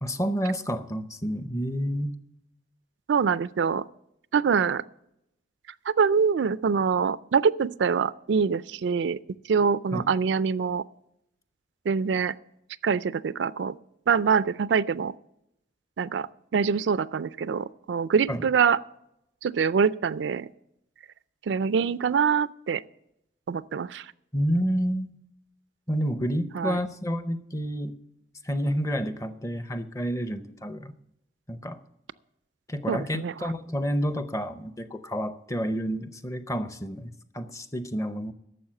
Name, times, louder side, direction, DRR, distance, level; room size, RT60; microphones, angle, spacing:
voice 1, 0.0-2.1 9.9-10.1 18.3-18.4 24.3-25.1 25.9-28.0 28.4-30.9 31.5-31.8 32.7-38.3, equal, 15° left, 11 dB, 0.6 m, -29 dB
voice 2, 3.1-3.8 4.3-4.8 5.9-9.2 9.5-10.8 11.9-12.3 12.8-13.7 14.1-15.1 16.0-16.3 16.5-18.8 19.4-20.5 21.5-22.8 23.5-24.1 26.5-26.8 32.9-33.5, right 6 dB, 80° right, 17 dB, 0.4 m, -24 dB
12.0 x 7.2 x 7.5 m, 0.81 s
head